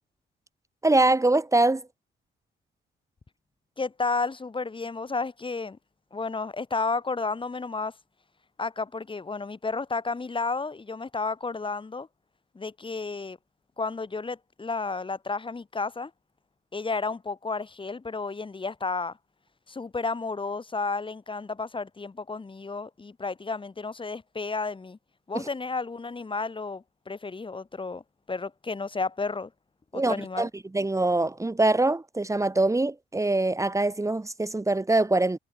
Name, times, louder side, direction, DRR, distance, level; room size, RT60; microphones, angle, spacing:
voice 1, 0.8-1.8 25.3-25.5 29.9-30.5 30.7-35.4, right 2 dB, 15° right, 2.0 m, -23 dB
voice 2, 3.8-5.8 6.1-7.9 8.6-12.1 12.5-13.4 13.8-16.1 16.7-19.2 19.7-25.0 25.3-28.0 28.3-29.5 29.9-30.5, left 4 dB, 25° left, 2.4 m, -32 dB
cardioid pair, 90°, 20 cm